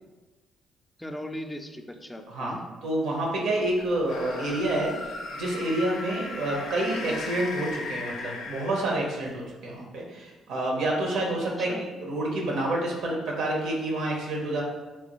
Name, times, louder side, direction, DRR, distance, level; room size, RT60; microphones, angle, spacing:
voice 1, 1.0-2.6 6.6-6.7 11.6-11.8, left 1 dB, 10° left, 4 dB, 0.3 m, -38 dB
voice 2, 2.8-14.6, right 1 dB, 80° right, -1 dB, 0.8 m, -28 dB
sound 1, 4.0-9.3, left 3 dB, 75° left, 0.4 m, -37 dB
3.4 x 2.3 x 3.0 m, 1.2 s
cardioid pair, 90°, 0 cm